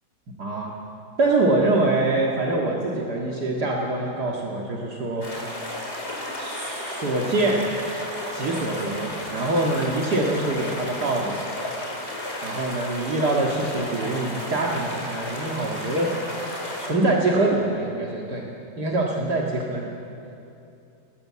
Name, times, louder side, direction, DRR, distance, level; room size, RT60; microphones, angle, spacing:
voice 1, 0.4-0.7 1.2-5.3 6.0-6.1 6.4-7.7 8.3-11.4 12.4-16.3 16.8-18.4 18.8-19.9, right 2 dB, 65° right, -2 dB, 2.4 m, -24 dB
sound 1, 5.2-16.9, left 1 dB, 35° left, 4.3 m, -33 dB
26.0 x 18.5 x 7.5 m, 2.8 s
omnidirectional pair, 1.9 m